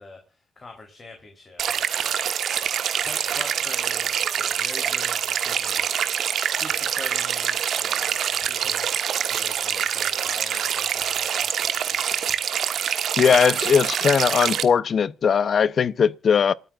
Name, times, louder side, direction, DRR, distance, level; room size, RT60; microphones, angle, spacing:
voice 1, 0.0-6.3 6.5-9.0 9.3-12.4, left 3 dB, 30° left, 3.7 m, -44 dB
sound 1, 1.6-14.6, right 9 dB, 65° right, 1.4 m, -25 dB
voice 2, 13.2-16.5, left 7 dB, 50° left, 0.7 m, -19 dB
27.5 x 9.3 x 2.5 m
cardioid pair, 90°, 0 cm